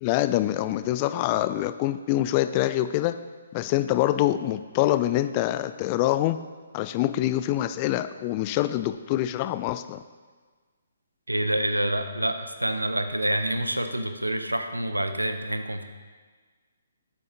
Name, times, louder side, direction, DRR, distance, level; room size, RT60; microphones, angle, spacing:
voice 1, 0.0-3.2 3.5-6.4 6.7-10.0, left 14 dB, 30° left, 12 dB, 0.3 m, -25 dB
voice 2, 11.3-15.9, right 1 dB, 85° right, 8 dB, 0.7 m, -27 dB
9.3 x 7.5 x 3.8 m, 1.5 s
figure-of-eight pair, 135°, 0 cm